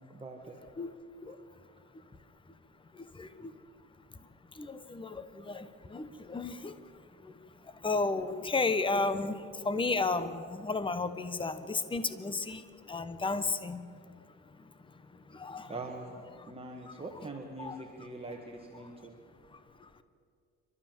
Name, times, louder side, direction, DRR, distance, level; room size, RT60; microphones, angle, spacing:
voice 1, 0.1-0.6 1.3-1.4 15.7-19.1, right 2 dB, 20° right, 1 dB, 1.7 m, -43 dB
voice 2, 2.9-3.5 4.5-6.8 7.2-7.3 7.8-13.8 15.3-15.7 16.4-16.5 16.9-17.0 17.6-17.8 19.8-19.9, left 3 dB, 15° left, 12 dB, 1.1 m, -33 dB
27.0 x 13.0 x 7.7 m, 2.3 s
cardioid pair, 115°, 32 cm